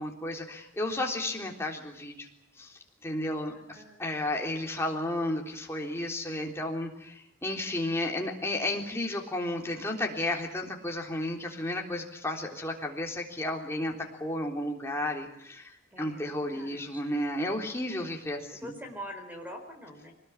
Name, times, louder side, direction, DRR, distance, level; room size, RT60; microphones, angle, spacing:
voice 1, 0.0-2.3 2.6-13.9 14.2-18.7, left 1 dB, 15° left, 1 dB, 3.6 m, -33 dB
voice 2, 3.5-4.0 15.9-17.0 17.8-18.1 18.5-20.1, equal, 10° right, 4 dB, 4.4 m, -45 dB
23.5 x 20.0 x 9.8 m, 0.75 s
head